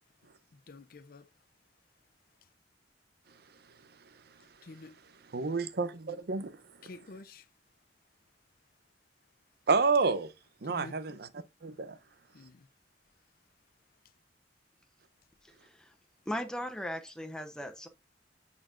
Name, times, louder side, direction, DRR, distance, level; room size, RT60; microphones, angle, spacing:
voice 1, 0.5-1.3 4.6-5.0 6.8-7.5 10.7-11.2 12.3-12.7, left 3 dB, 55° left, 0.5 m, -49 dB
voice 2, 5.3-6.5 6.8-6.9 9.7-10.3 10.6-11.3 11.6-12.0, right 4 dB, 65° right, 0.6 m, -29 dB
voice 3, 15.6-15.9 16.3-17.9, equal, 5° left, 0.7 m, -38 dB
8.8 x 4.4 x 2.5 m
head